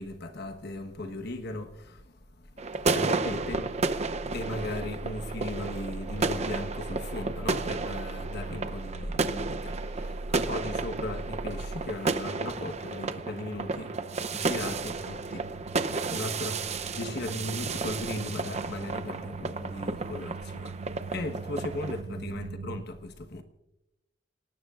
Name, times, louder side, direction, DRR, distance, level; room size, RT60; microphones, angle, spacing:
voice 1, 0.0-2.0 2.8-14.0 14.3-15.4 16.1-20.7 21.1-23.4, left 1 dB, 60° left, 1.2 m, -37 dB
sound 1, 2.6-22.0, right 3 dB, 35° right, 0.6 m, -33 dB
sound 2, 3.3-22.8, right 3 dB, 90° right, 0.6 m, -41 dB
voice 2, 9.4-10.2 21.7-22.4, right 1 dB, 20° right, 3.3 m, -59 dB
29.0 x 18.5 x 2.5 m
head